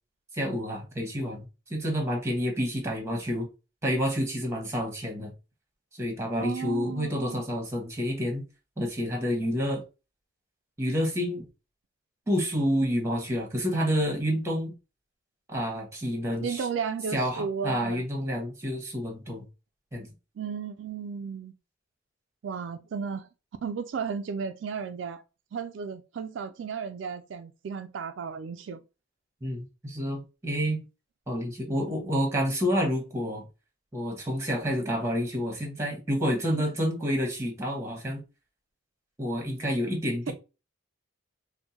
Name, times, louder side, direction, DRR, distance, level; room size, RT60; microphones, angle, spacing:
voice 1, 0.3-3.5 3.8-5.3 5.9-8.4 8.8-9.8 10.8-11.5 12.3-14.7 15.5-16.6 17.1-19.4 19.9-20.1 29.4-30.8 31.3-33.4 33.9-38.2 39.2-40.3, equal, 15° right, 1.2 m, -29 dB
voice 2, 6.4-7.4 16.4-18.0 20.4-21.5 22.4-23.3 23.6-25.2 25.5-28.8, right 6 dB, 70° right, 0.3 m, -34 dB
4.4 x 2.1 x 2.8 m
head